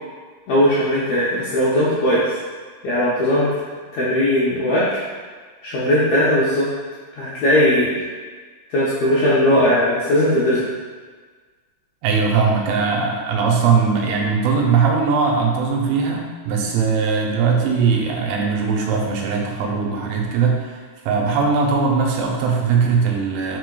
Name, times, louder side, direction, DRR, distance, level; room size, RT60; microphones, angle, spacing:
voice 1, 0.5-2.3 2.8-3.5 3.9-5.0 5.6-6.7 7.2-7.9 8.7-10.7, equal, 80° left, -8 dB, 1.6 m, -18 dB
voice 2, 12.0-23.6, right 5 dB, 90° right, 0 dB, 2.4 m, -20 dB
4.8 x 4.5 x 2.2 m, 1.5 s
omnidirectional pair, 3.9 m